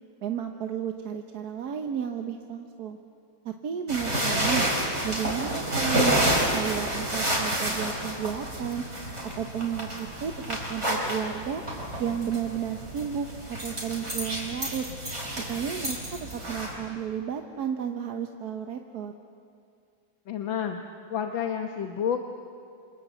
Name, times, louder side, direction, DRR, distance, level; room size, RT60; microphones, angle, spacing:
voice 1, 0.2-3.0 3.4-4.7 5.0-8.8 9.4-11.6 12.0-14.8 15.5-19.1, right 8 dB, 55° right, 5 dB, 1.4 m, -32 dB
sound 1, 3.9-16.7, right 1 dB, 35° right, 5.1 m, -29 dB
voice 2, 20.3-20.8 21.1-22.2, left 8 dB, 75° left, 5 dB, 1.8 m, -29 dB
27.0 x 26.0 x 8.1 m, 2.4 s
omnidirectional pair, 2.2 m